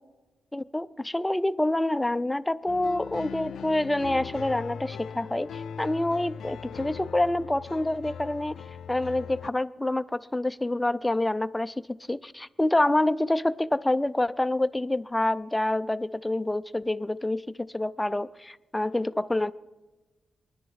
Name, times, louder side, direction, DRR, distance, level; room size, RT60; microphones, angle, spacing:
voice 1, 0.5-8.5 8.9-11.7 12.1-19.5, left 1 dB, 10° left, 14 dB, 0.4 m, -27 dB
sound 1, 2.7-9.5, left 7 dB, 80° left, 0.4 m, -39 dB
23.5 x 11.0 x 4.7 m, 1.2 s
wide cardioid pair, 155°, 0 cm